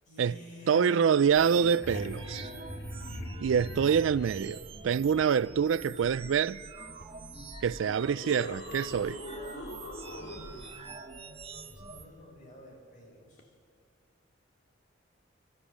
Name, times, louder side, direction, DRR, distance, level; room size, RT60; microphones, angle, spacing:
voice 1, 0.1-1.4 11.6-13.4, left 1 dB, 40° left, 6.2 m, -48 dB
voice 2, 0.7-2.5 3.4-6.6 7.6-9.2, right 7 dB, 80° right, 0.4 m, -26 dB
sound 1, 1.1-12.1, right 3 dB, 30° right, 1.5 m, -45 dB
sound 2, 1.4-4.5 7.0-7.1 7.8-10.9 13.4-13.5, equal, 65° left, 2.0 m, -42 dB
27.5 x 13.5 x 7.3 m
head